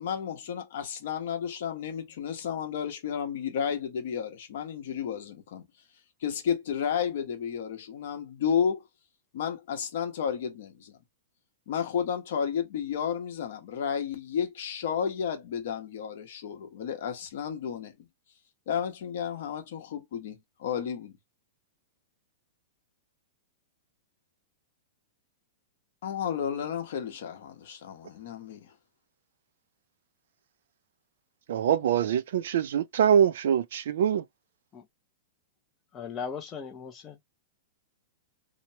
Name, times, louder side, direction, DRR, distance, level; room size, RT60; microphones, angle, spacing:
voice 1, 0.0-5.7 6.2-8.8 9.3-11.0 11.7-17.9 18.7-21.2 26.0-28.7, left 8 dB, 55° left, 1.0 m, -32 dB
voice 2, 31.5-34.2, right 8 dB, 60° right, 0.4 m, -24 dB
voice 3, 35.9-37.2, left 6 dB, 15° left, 0.5 m, -38 dB
3.0 x 2.1 x 2.8 m
supercardioid pair, 175°, 0 cm